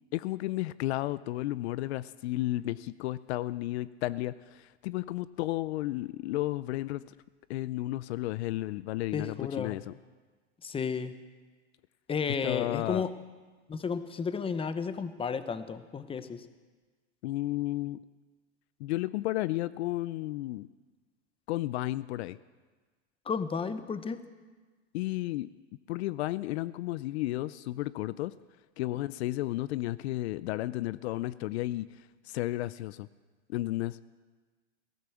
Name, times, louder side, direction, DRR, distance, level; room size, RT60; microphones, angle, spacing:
voice 1, 0.1-7.0 7.5-9.9 12.4-13.1 17.2-18.0 18.8-20.7 21.5-22.4 24.9-25.5 25.9-28.3 28.8-33.1 33.5-34.0, left 16 dB, 65° left, 17 dB, 0.6 m, -33 dB
voice 2, 9.1-9.8 10.6-11.1 12.1-13.1 13.7-16.4 23.2-24.2, left 6 dB, 15° left, 12 dB, 0.9 m, -33 dB
18.0 x 11.0 x 7.1 m, 1.4 s
hypercardioid pair, 110°, 35 cm